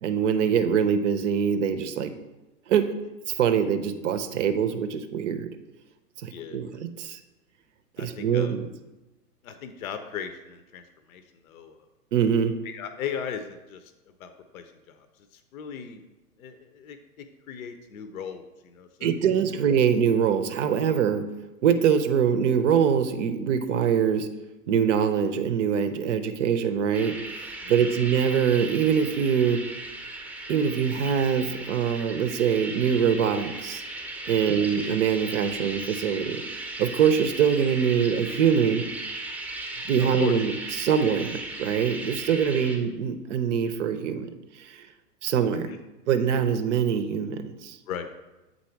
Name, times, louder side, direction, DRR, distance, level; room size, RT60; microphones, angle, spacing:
voice 1, 0.0-2.1 2.7-2.8 3.4-5.5 6.2-7.2 8.0-8.6 12.1-12.6 19.0-21.3 21.6-24.3 24.7-29.6 30.5-33.8 34.3-36.4 36.8-38.9 39.9-44.8 45.2-45.7 46.1-47.8, right 7 dB, 50° right, 9 dB, 0.6 m, -24 dB
voice 2, 6.3-6.7 8.0-8.5 9.4-10.8 11.1-11.8 12.6-15.1 15.3-16.0 16.4-19.1 27.6-27.9 34.5-34.6 40.0-40.3 42.5-42.7 45.7-45.8 47.9-48.1, left 8 dB, 60° left, 9 dB, 0.7 m, -37 dB
sound 1, 26.9-42.8, right 2 dB, 5° right, 0.7 m, -37 dB
7.5 x 4.1 x 4.5 m, 1.1 s
figure-of-eight pair, 110°, 48 cm